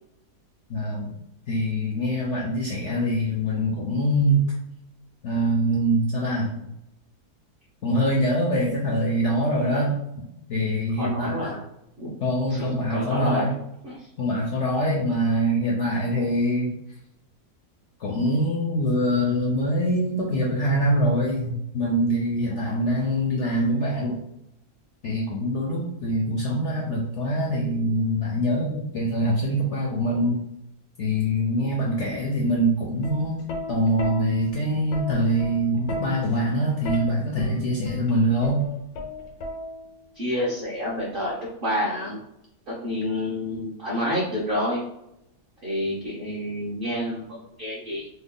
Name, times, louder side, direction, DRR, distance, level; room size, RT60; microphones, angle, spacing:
voice 1, 0.7-1.2 1.5-4.4 5.2-6.7 7.8-11.5 12.2-13.5 14.2-16.7 18.0-24.2 25.0-30.4 31.0-38.6, equal, 65° left, -3 dB, 0.7 m, -24 dB
voice 2, 11.0-11.6 12.0-12.1 12.5-13.5 13.8-14.1 40.1-42.2 42.7-44.8 45.6-48.1, left 1 dB, 55° right, -5 dB, 0.6 m, -29 dB
Plucked string instrument, 32.9-40.1 41.1-41.5, left 1 dB, 90° left, 1.3 m, -36 dB
3.0 x 2.2 x 3.6 m, 0.84 s
omnidirectional pair, 1.7 m